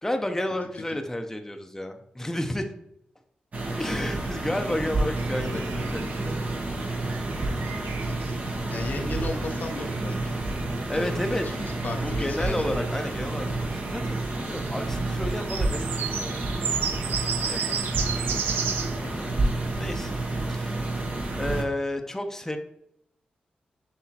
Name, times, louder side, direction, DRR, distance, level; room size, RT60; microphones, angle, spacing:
voice 1, 0.0-2.7 3.8-6.5 9.0-9.4 10.9-11.5 12.0-16.5 17.5-17.7 19.0-19.4 19.8-20.1 20.5-20.8 21.4-22.6, left 1 dB, 15° left, 5 dB, 0.6 m, -32 dB
sound 1, 3.5-21.6, right 2 dB, 50° right, 0.9 m, -30 dB
sound 2, 5.2-19.0, right 7 dB, 90° right, 0.4 m, -35 dB
voice 2, 7.6-8.2 8.7-10.4 10.9-12.9 19.0-19.3, left 2 dB, 60° left, 4 dB, 0.6 m, -36 dB
5.9 x 3.0 x 2.8 m, 0.75 s
supercardioid pair, 45°, 3 cm